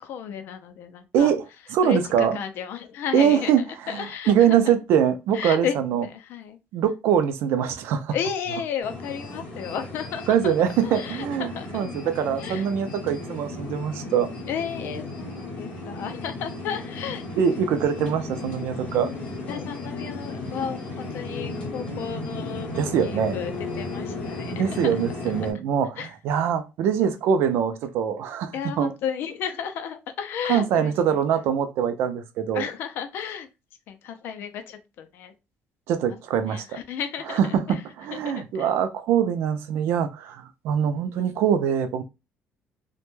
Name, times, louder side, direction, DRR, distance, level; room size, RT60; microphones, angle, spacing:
voice 1, 0.0-1.3 1.8-3.5 3.9-4.6 5.3-5.7 6.0-6.6 8.1-10.5 10.8-11.9 12.4-12.6 14.5-17.2 18.0-18.3 19.5-23.5 23.8-24.9 26.0-26.1 28.5-31.2 32.5-33.5 33.9-35.3 36.5-37.6 38.1-38.7, left 8 dB, 60° left, 0.4 m, -33 dB
voice 2, 1.1-2.4 3.1-6.1 6.7-8.2 10.3-14.3 17.4-19.1 22.7-23.4 24.6-28.9 30.4-32.7 35.9-36.8 37.3-42.0, right 8 dB, 70° right, 0.4 m, -23 dB
sound 1, 8.8-25.5, left 2 dB, 25° left, 0.9 m, -35 dB
2.1 x 2.1 x 3.0 m
cardioid pair, 175°, 4 cm